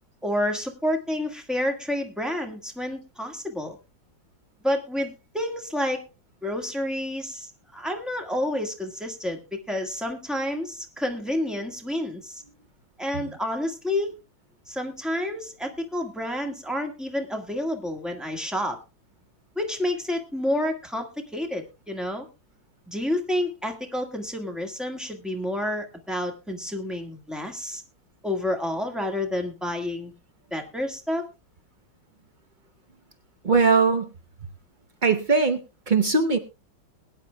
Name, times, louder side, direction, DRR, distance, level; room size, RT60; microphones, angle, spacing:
voice 1, 0.2-3.8 4.6-6.0 6.4-12.4 13.0-14.1 14.7-18.8 19.5-21.1 21.3-22.3 22.9-27.8 28.2-30.1 30.5-31.2, left 1 dB, ahead, 3 dB, 1.4 m, -29 dB
voice 2, 33.4-34.1 35.0-36.4, right 4 dB, 90° right, 8 dB, 0.4 m, -20 dB
21.5 x 9.7 x 2.3 m, 0.27 s
omnidirectional pair, 2.1 m